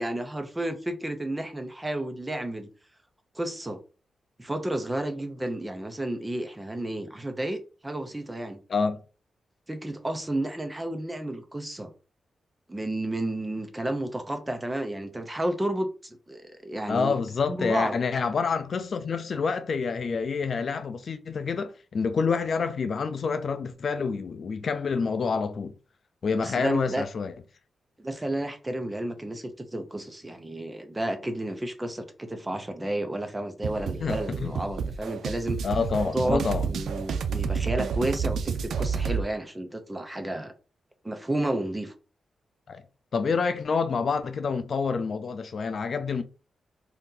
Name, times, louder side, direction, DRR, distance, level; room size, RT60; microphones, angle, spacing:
voice 1, 0.0-2.7 3.3-3.8 4.4-8.6 9.7-11.9 12.7-17.2 17.5-18.0 26.3-27.0 28.0-35.6 36.1-40.5 41.0-41.9, right 1 dB, 15° right, 0.5 m, -31 dB
voice 2, 16.9-25.7 26.2-27.3 34.0-34.6 35.6-36.6 42.7-42.8 43.1-46.2, left 5 dB, 50° left, 0.4 m, -27 dB
sound 1, 33.6-39.2, right 6 dB, 85° right, 0.4 m, -30 dB
2.8 x 2.5 x 3.7 m
wide cardioid pair, 135°, 0 cm